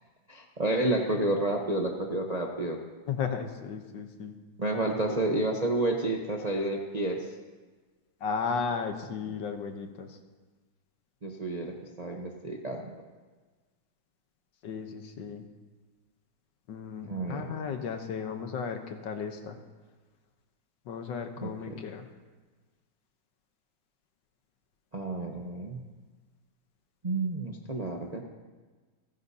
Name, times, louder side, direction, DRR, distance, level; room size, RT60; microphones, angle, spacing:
voice 1, 0.3-2.8 4.6-7.3 11.2-12.9 17.0-17.5 21.4-21.8 24.9-25.8 27.0-28.2, right 2 dB, 35° right, 0 dB, 0.6 m, -30 dB
voice 2, 3.1-4.3 8.2-10.2 14.6-15.4 16.7-19.6 20.9-22.1, left 6 dB, 70° left, 6 dB, 1.6 m, -35 dB
28.5 x 10.5 x 2.8 m, 1.3 s
omnidirectional pair, 2.2 m